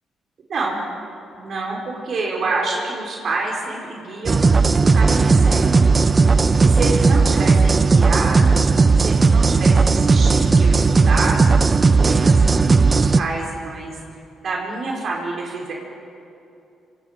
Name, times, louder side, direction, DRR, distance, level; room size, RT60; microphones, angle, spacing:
voice 1, 0.5-0.8 1.3-4.6 4.9-5.9 6.6-14.0 14.4-15.7, right 3 dB, 50° right, -2 dB, 4.8 m, -28 dB
sound 1, 4.3-13.2, right 4 dB, 30° right, 0.8 m, -15 dB
27.0 x 27.0 x 5.2 m, 2.7 s
cardioid pair, 115°, 0 cm